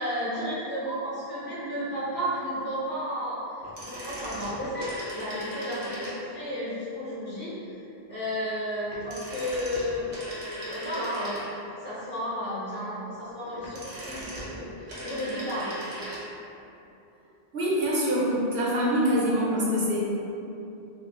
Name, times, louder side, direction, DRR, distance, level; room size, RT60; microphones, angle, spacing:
voice 1, 0.0-3.4 3.8-7.5 8.1-10.0 10.7-11.5 11.8-15.8, equal, 60° left, -12 dB, 1.3 m, -32 dB
sound 1, 3.6-6.5 8.9-11.8 13.4-16.3 16.5-16.6, equal, 85° right, 1.2 m, -38 dB
voice 2, 17.5-20.0, equal, 65° right, -6 dB, 1.0 m, -24 dB
3.6 x 2.6 x 3.6 m, 2.8 s
omnidirectional pair, 1.1 m